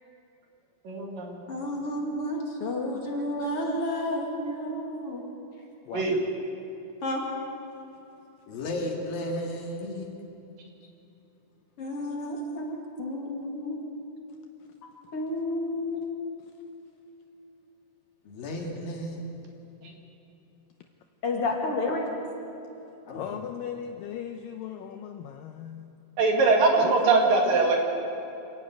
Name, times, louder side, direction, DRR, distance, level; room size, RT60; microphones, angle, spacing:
voice 1, 0.9-1.4 5.9-6.2 19.8-19.9 26.2-27.8, right 3 dB, 60° right, 1 dB, 3.5 m, -22 dB
voice 2, 1.5-5.2 7.0-7.2 11.8-14.0 15.1-16.0 21.2-22.1, left 1 dB, 40° left, -1 dB, 2.7 m, -31 dB
voice 3, 8.5-10.2 18.3-19.3 23.1-23.4, left 1 dB, 60° left, 0 dB, 3.7 m, -34 dB
voice 4, 23.1-25.9 26.8-27.8, left 9 dB, 85° left, 5 dB, 2.0 m, -38 dB
27.0 x 11.0 x 9.1 m, 2.9 s
omnidirectional pair, 4.8 m